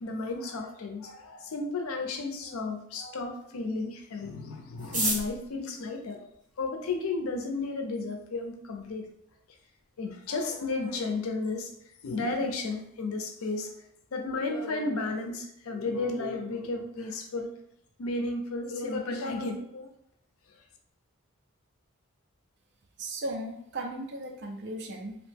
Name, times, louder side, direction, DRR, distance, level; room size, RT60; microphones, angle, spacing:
voice 1, 0.0-6.3 6.6-9.1 10.0-11.7 12.0-13.7 14.1-17.5 18.0-19.9, left 3 dB, 80° left, 4 dB, 0.5 m, -33 dB
sound 1, 4.8-7.0 7.8-7.9 8.1-8.2 8.5-9.0 9.3-9.4 9.6-10.0 10.3-10.5 10.9-11.2, right 2 dB, 35° right, 1.0 m, -33 dB
voice 2, 23.0-25.2, right 1 dB, 55° right, 3 dB, 0.5 m, -36 dB
2.8 x 2.1 x 3.2 m, 0.72 s
head